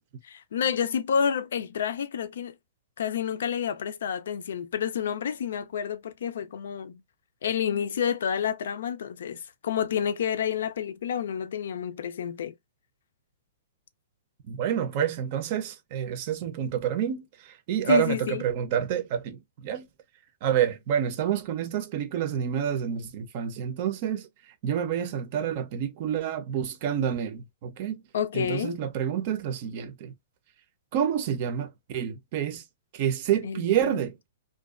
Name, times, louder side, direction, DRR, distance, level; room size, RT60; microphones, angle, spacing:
voice 1, 0.3-2.6 3.0-7.0 7.4-12.5 17.9-18.4 28.1-28.8 33.4-34.0, left 8 dB, 70° left, 0.4 m, -29 dB
voice 2, 14.5-19.9 20.4-24.3 24.6-28.0 28.3-30.1 30.9-32.6 32.9-34.3, right 9 dB, 40° right, 0.6 m, -28 dB
2.5 x 2.2 x 2.3 m
hypercardioid pair, 160°, 0 cm